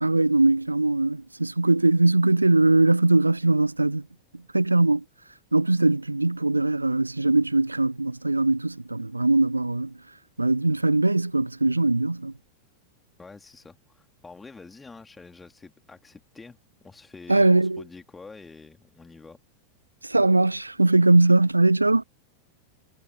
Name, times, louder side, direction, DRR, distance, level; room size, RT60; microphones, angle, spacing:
voice 1, 0.0-4.0 4.5-5.0 5.5-9.9 10.4-12.3 17.3-17.8 20.0-22.0, right 2 dB, 85° right, 0.5 m, -21 dB
voice 2, 13.2-16.6 16.8-19.4, left 4 dB, 10° left, 2.3 m, -46 dB
figure-of-eight pair, 90°, 0 cm